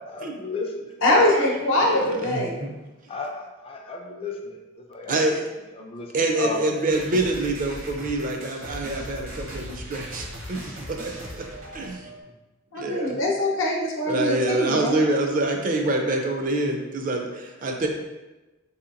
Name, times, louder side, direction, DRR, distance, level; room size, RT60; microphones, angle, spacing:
voice 1, 0.0-1.3 3.1-5.2 5.8-6.1 6.4-6.7, left 3 dB, 30° left, 1 dB, 0.4 m, -34 dB
voice 2, 1.0-2.5 12.7-15.0, left 1 dB, 75° left, -1 dB, 0.8 m, -22 dB
voice 3, 1.7-2.7 5.1-5.4 6.1-11.5 11.7-12.1 12.8-13.2 14.1-17.9, right 2 dB, 45° right, 3 dB, 0.4 m, -26 dB
sound 1, 6.9-12.2, equal, 70° right, 0.8 m, -38 dB
4.0 x 2.8 x 2.5 m, 1.1 s
head